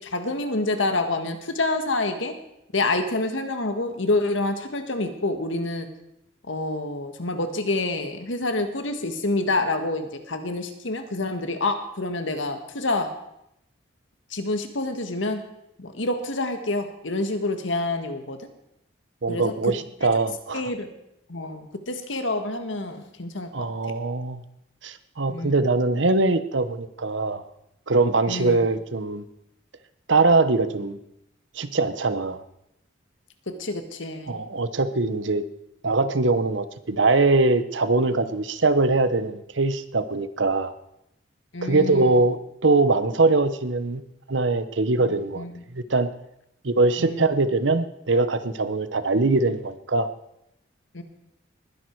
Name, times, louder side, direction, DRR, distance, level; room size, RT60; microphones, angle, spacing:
voice 1, 0.0-2.4 2.7-5.9 6.5-13.1 14.3-15.4 15.8-18.5 19.3-19.5 20.5-20.9 21.3-23.7 25.3-25.6 28.3-28.6 33.5-34.4 41.5-42.1 45.4-45.5 47.0-47.3 50.9-51.0, left 2 dB, 80° left, 7 dB, 1.7 m, -27 dB
voice 2, 19.2-20.7 23.5-24.4 24.8-27.4 27.9-29.2 30.1-31.0 31.5-32.4 34.3-35.4 35.8-40.7 41.6-42.4 42.6-44.0 44.3-45.4 45.7-46.1 46.6-50.1, right 3 dB, 75° right, 12 dB, 1.0 m, -22 dB
20.5 x 11.0 x 4.7 m, 0.82 s
head